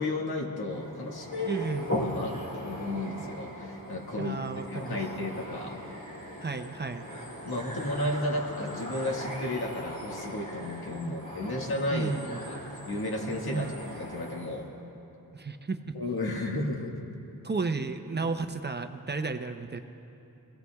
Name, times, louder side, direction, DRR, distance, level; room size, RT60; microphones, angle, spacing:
voice 1, 0.0-1.7 2.0-2.4 2.6-4.4 4.7-5.8 6.1-6.4 7.4-12.6 12.8-14.7 15.9-17.0, left 1 dB, 80° left, 0 dB, 1.7 m, -33 dB
sound 1, 0.7-14.6, equal, 50° left, 3.2 m, -39 dB
voice 2, 1.5-1.8 4.2-5.0 6.4-7.1 11.0-11.2 11.9-12.4 13.5-13.7 15.3-16.0 17.4-19.8, right 4 dB, 30° right, 7 dB, 0.6 m, -33 dB
24.5 x 16.5 x 2.3 m, 2.9 s
wide cardioid pair, 115°, 37 cm